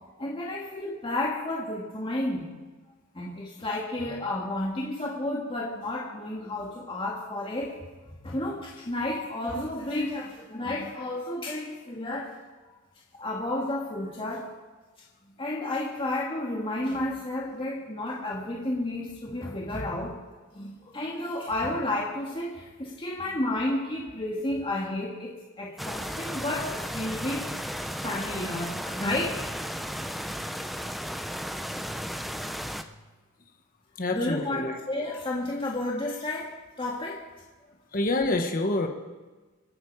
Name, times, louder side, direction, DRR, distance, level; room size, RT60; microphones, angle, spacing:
voice 1, 0.2-2.5 3.1-7.7 8.2-12.3 13.2-14.4 15.4-20.2 20.5-27.4 28.0-29.4 30.0-30.1 34.1-36.5 36.8-37.2, left 1 dB, 25° left, -4 dB, 2.0 m, -31 dB
sound 1, 25.8-32.8, equal, ahead, 0.6 m, -34 dB
voice 2, 34.0-34.8 37.9-38.9, left 2 dB, 40° left, 3 dB, 1.4 m, -27 dB
26.0 x 9.7 x 4.8 m, 1.3 s
head